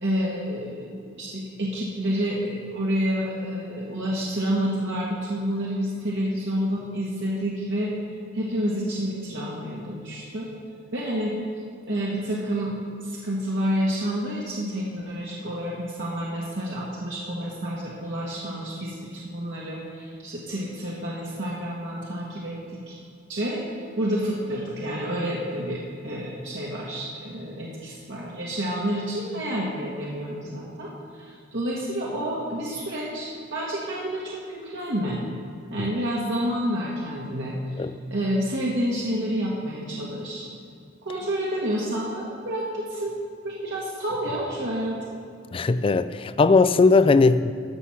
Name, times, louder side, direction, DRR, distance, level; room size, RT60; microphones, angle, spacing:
voice 1, 0.0-7.9 8.3-10.5 10.9-11.3 11.9-22.6 22.9-23.0 23.3-23.6 24.0-35.2 35.7-40.4 41.0-43.1 43.4-45.0, equal, 70° right, -5 dB, 1.5 m, -29 dB
voice 2, 45.5-47.5, left 4 dB, 30° left, 13 dB, 0.3 m, -18 dB
14.0 x 6.2 x 5.8 m, 2.4 s
head